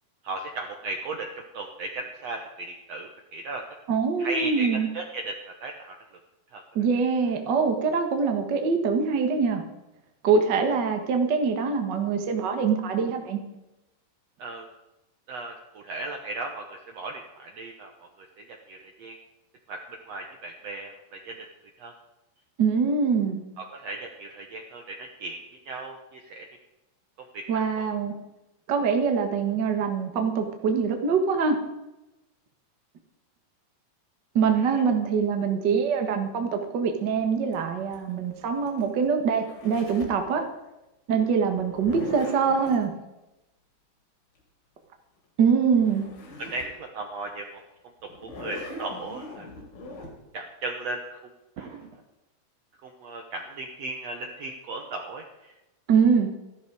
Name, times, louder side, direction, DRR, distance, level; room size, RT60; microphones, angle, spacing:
voice 1, 0.2-3.6 4.2-5.4 5.6-6.0 6.5-6.6 14.4-14.7 15.3-17.9 18.2-19.2 19.7-19.8 20.1-21.4 21.8-21.9 23.6-25.4 25.7-26.5 27.3-27.9 46.4-47.6 48.2-49.5 50.3-51.2 51.6-52.0 52.8-55.5, right 2 dB, 65° right, 3 dB, 1.7 m, -36 dB
voice 2, 3.9-4.9 6.7-9.6 10.2-13.4 22.6-23.4 27.5-28.2 28.7-31.6 34.3-40.4 41.1-42.9 45.4-46.0 55.9-56.3, right 5 dB, 50° right, 4 dB, 1.3 m, -24 dB
Zipper (clothing), 37.5-40.2 41.6-42.8 45.4-45.5 45.8-46.8 47.2-47.3 48.1-50.1, left 2 dB, 85° left, 4.6 m, -40 dB
14.0 x 12.5 x 4.8 m, 0.97 s
omnidirectional pair, 4.2 m